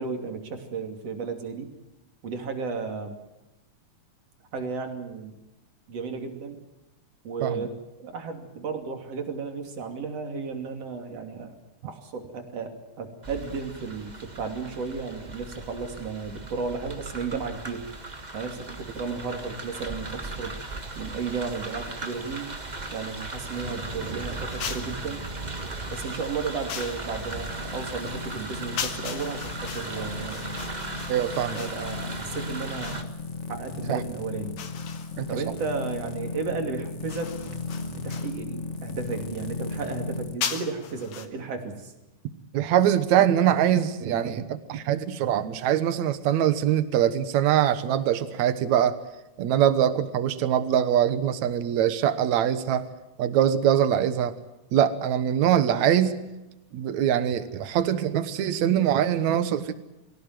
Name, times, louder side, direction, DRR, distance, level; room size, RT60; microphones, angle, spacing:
voice 1, 0.0-1.7 2.2-3.2 4.5-5.4 5.9-6.6 7.2-11.5 11.8-17.8 18.3-20.5 20.9-22.5 22.9-25.2 25.9-30.6 31.5-33.1 33.5-34.6 35.3-37.4 37.9-41.9, right 4 dB, 55° right, 5 dB, 3.7 m, -34 dB
sound 1, 13.2-33.0, right 2 dB, 20° right, 1.2 m, -37 dB
sound 2, 24.5-25.0 26.7-27.1 28.8-33.1 34.6-35.4 37.1-38.4 40.4-41.3, left 8 dB, 75° left, 3.1 m, -37 dB
sound 3, 27.3-40.4, left 3 dB, 40° left, 1.0 m, -36 dB
voice 2, 31.1-31.6 33.9-34.0 35.2-35.3 42.5-49.0 49.4-52.8 53.2-54.3 54.7-56.2 56.7-59.7, right 10 dB, 70° right, 12 dB, 2.5 m, -23 dB
24.5 x 16.5 x 9.3 m, 1.0 s
omnidirectional pair, 3.5 m